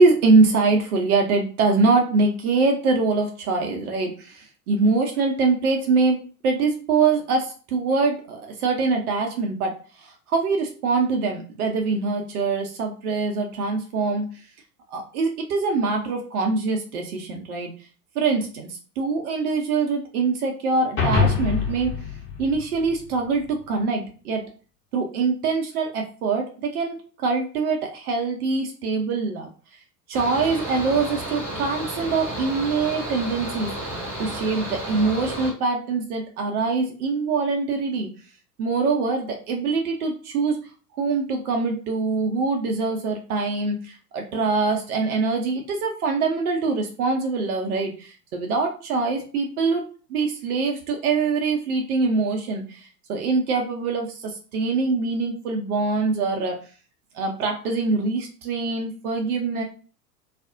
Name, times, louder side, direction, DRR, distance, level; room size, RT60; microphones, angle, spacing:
voice 1, 0.0-14.3 14.9-17.7 18.1-21.9 22.4-24.4 24.9-29.5 30.1-38.1 38.6-40.6 41.0-49.8 50.1-56.6 57.1-59.6, right 4 dB, 65° right, 2 dB, 0.7 m, -24 dB
sound 1, 21.0-23.5, left 5 dB, 25° left, 0.8 m, -25 dB
Mechanical fan, 30.1-35.5, right 1 dB, 5° right, 1.2 m, -32 dB
2.4 x 2.0 x 2.5 m, 0.38 s
figure-of-eight pair, 90°, 48 cm